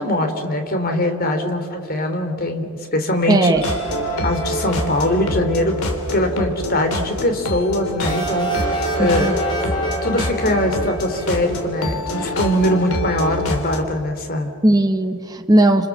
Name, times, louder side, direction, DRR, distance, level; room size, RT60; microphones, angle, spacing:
voice 1, 0.0-3.5 4.2-5.8 6.1-9.3 10.0-14.5, left 1 dB, 45° left, 6 dB, 3.0 m, -22 dB
voice 2, 3.3-3.6 9.0-9.4 14.6-15.9, right 1 dB, 15° right, 4 dB, 0.9 m, -17 dB
sound 1, 3.5-13.8, equal, 80° left, 3.0 m, -26 dB
sound 2, 8.1-11.8, left 1 dB, 20° left, 5.6 m, -28 dB
29.5 x 27.5 x 7.2 m, 2.4 s
head